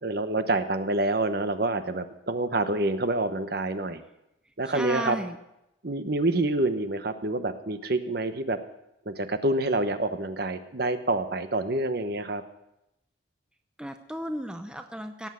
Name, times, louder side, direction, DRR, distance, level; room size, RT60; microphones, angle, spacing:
voice 1, 0.0-4.0 4.6-5.2 5.8-8.6 9.1-12.4, right 2 dB, 55° right, 9 dB, 0.9 m, -27 dB
voice 2, 4.7-5.4 13.8-15.3, equal, 5° right, 6 dB, 0.6 m, -34 dB
17.5 x 7.2 x 6.9 m, 0.87 s
head